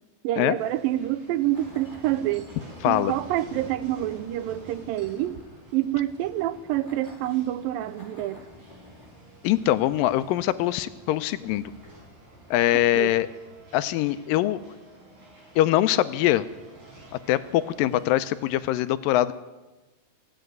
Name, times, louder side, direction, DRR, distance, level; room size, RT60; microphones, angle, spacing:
voice 1, 0.2-2.5 2.9-5.4 5.7-8.4 12.7-13.1, right 13 dB, 85° right, 2.3 m, -27 dB
sound 1, 0.5-18.6, right 1 dB, 40° right, 5.4 m, -49 dB
sound 2, 1.5-13.7, left 2 dB, 15° left, 3.2 m, -53 dB
voice 2, 2.8-3.1 9.4-11.6 12.5-13.3 13.7-14.6 15.6-16.5 17.3-19.3, left 14 dB, 85° left, 2.3 m, -23 dB
16.0 x 8.9 x 9.3 m
omnidirectional pair, 4.0 m